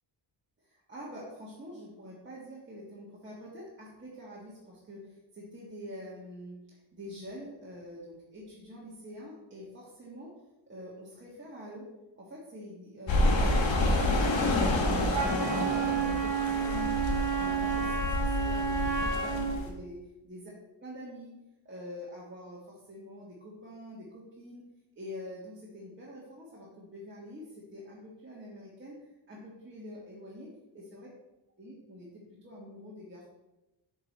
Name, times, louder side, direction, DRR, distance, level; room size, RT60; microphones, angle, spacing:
voice 1, 0.6-10.3 10.7-11.9 12.2-15.1 15.3-17.0 17.4-20.0 20.2-20.5 20.8-21.3 21.6-24.6 25.0-29.0 29.3-30.5 30.9-31.1 31.6-32.1 32.4-33.2, left 1 dB, 25° right, -6 dB, 1.4 m, -46 dB
sound 1, 13.1-19.7, left 2 dB, 80° left, 1.4 m, -28 dB
Wind instrument woodwind instrument, 15.1-19.6, right 6 dB, 45° right, 1.2 m, -30 dB
7.7 x 3.8 x 4.1 m, 0.98 s
wide cardioid pair, 125°, 44 cm